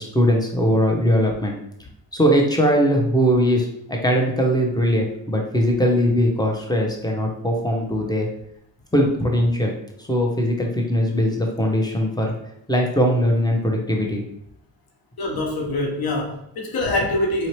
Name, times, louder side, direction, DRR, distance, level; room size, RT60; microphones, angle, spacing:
voice 1, 0.0-1.5 2.1-8.3 8.9-9.7 10.1-12.3 12.7-14.2, equal, 10° left, 0 dB, 1.0 m, -20 dB
voice 2, 15.2-17.5, left 2 dB, 55° left, -1 dB, 1.2 m, -24 dB
4.1 x 2.8 x 3.2 m, 0.75 s
cardioid pair, 70°, 44 cm